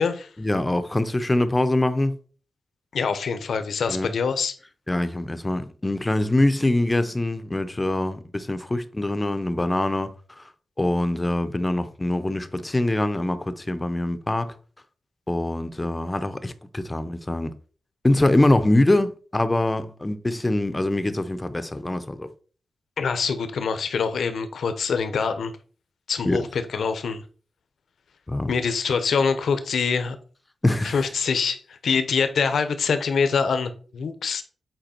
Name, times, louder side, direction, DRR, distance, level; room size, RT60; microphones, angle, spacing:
voice 1, 0.4-2.1 3.9-4.1 4.9-10.1 10.8-14.5 15.3-17.5 18.0-22.3 26.3-26.4 28.3-28.5 30.6-31.0, left 1 dB, 15° left, 0.6 m, -23 dB
voice 2, 2.9-4.5 23.0-25.5 26.1-27.2 28.5-30.2 30.8-34.4, left 5 dB, 70° left, 0.9 m, -24 dB
8.0 x 4.7 x 4.4 m
wide cardioid pair, 165°, 0 cm